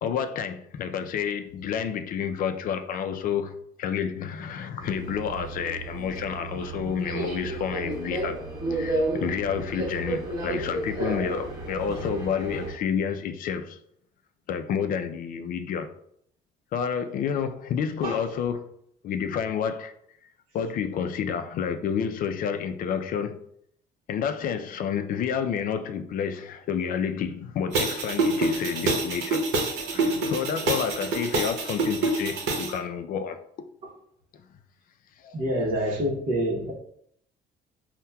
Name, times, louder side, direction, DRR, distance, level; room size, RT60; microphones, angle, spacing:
voice 1, 0.0-8.4 8.7-13.8 14.5-15.9 16.7-18.6 19.0-19.9 20.5-23.4 24.1-29.4 29.9-33.4 35.2-35.4, left 7 dB, 55° left, 8 dB, 0.4 m, -29 dB
Subway metro underground, 4.8-12.7, right 2 dB, 20° right, 1.1 m, -32 dB
sound 1, 27.7-32.7, right 2 dB, 85° right, 0.8 m, -26 dB
voice 2, 35.3-36.7, equal, 40° right, -6 dB, 0.8 m, -26 dB
5.5 x 2.1 x 2.2 m, 0.70 s
cardioid pair, 110°, 17 cm